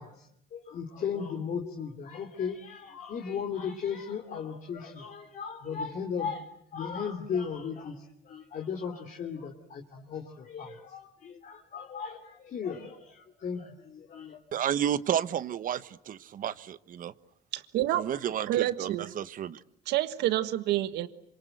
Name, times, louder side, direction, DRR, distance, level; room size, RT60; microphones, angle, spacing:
voice 1, 0.0-14.4, left 6 dB, 50° left, 2 dB, 3.1 m, -36 dB
voice 2, 14.5-17.1 18.0-19.6, right 10 dB, 55° right, 15 dB, 1.1 m, -31 dB
voice 3, 17.5-18.1 18.5-19.1 19.9-21.1, right 14 dB, 85° right, 12 dB, 1.5 m, -28 dB
27.0 x 26.0 x 8.0 m, 0.72 s
cardioid pair, 110°, 17 cm